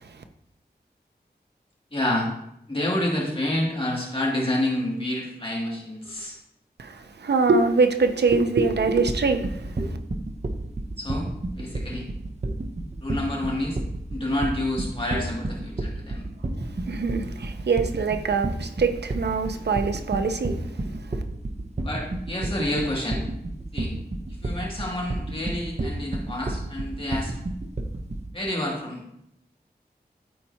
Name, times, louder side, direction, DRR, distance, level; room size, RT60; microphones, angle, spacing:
voice 1, 1.9-2.3 2.7-6.4 11.0-11.3 11.6-12.0 13.0-13.8 14.1-16.3 21.8-23.2 23.7-23.9 24.4-27.3 28.3-29.0, left 1 dB, 30° left, 2.5 m, -28 dB
voice 2, 6.8-9.7 16.9-20.6, right 4 dB, 85° right, 0.7 m, -23 dB
sound 1, 8.8-28.3, right 2 dB, 40° right, 0.9 m, -30 dB
13.0 x 4.5 x 2.9 m
wide cardioid pair, 75°, 17 cm